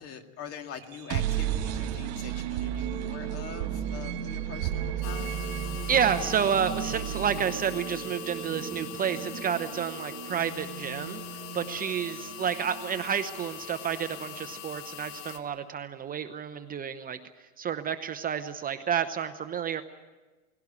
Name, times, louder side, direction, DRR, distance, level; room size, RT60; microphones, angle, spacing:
voice 1, 0.0-5.3, left 7 dB, 40° left, 6 dB, 2.0 m, -43 dB
sound 1, 0.8-14.7, right 9 dB, 65° right, 3.6 m, -35 dB
sound 2, 5.0-15.4, left 12 dB, 85° left, 1.8 m, -43 dB
voice 2, 5.9-11.2 11.5-17.2 17.6-19.8, right 8 dB, 25° right, 9 dB, 0.8 m, -30 dB
20.0 x 17.0 x 9.7 m, 1.3 s
supercardioid pair, 135°, 38 cm